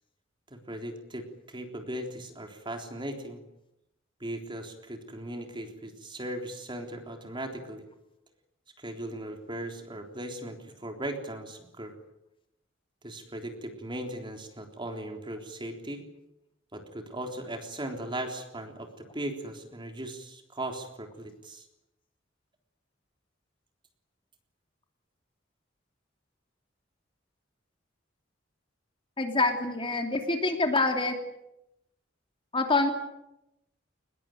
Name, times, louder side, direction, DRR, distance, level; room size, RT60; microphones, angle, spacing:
voice 1, 0.5-3.4 4.2-7.9 8.8-11.9 13.0-16.0 16.7-21.7, right 1 dB, 25° right, 4 dB, 3.6 m, -38 dB
voice 2, 29.2-31.2 32.5-32.9, left 3 dB, 30° left, 4 dB, 3.0 m, -26 dB
22.0 x 21.0 x 9.3 m, 0.87 s
head